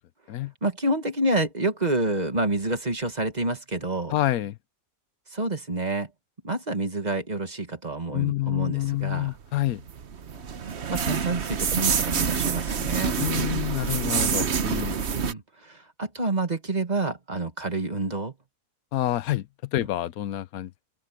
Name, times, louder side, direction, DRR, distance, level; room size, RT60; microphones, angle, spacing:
voice 1, 0.6-4.1 5.3-6.1 6.4-9.4 10.9-13.2 15.1-18.3, right 2 dB, 30° right, 1.9 m, -28 dB
voice 2, 4.1-4.6 8.1-9.8 13.2-15.0 18.9-19.5 19.7-20.7, left 14 dB, 85° left, 1.2 m, -27 dB
sound 1, 9.4-15.3, right 6 dB, 55° right, 1.2 m, -27 dB
open air
omnidirectional pair, 1.5 m